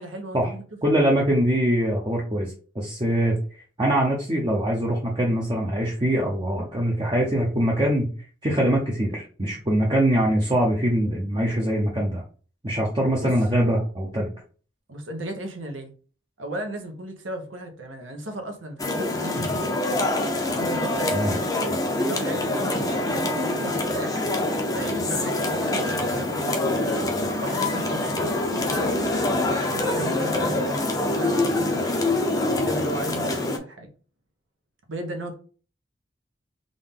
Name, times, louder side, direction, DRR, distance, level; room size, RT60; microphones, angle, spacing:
voice 1, 0.0-0.6 13.2-13.3 14.9-15.9 16.4-19.8 20.6-21.6 22.0-24.3 24.7-27.0 27.4-29.1 29.6-32.2 32.4-33.9 34.9-35.3, right 1 dB, 85° right, 1.0 m, -35 dB
voice 2, 0.8-3.4 3.8-8.1 8.4-12.2 12.6-14.3 21.1-21.3, right 1 dB, 25° right, 0.7 m, -23 dB
sound 1, 18.8-33.6, left 2 dB, 20° left, 0.6 m, -25 dB
3.8 x 2.6 x 3.6 m
head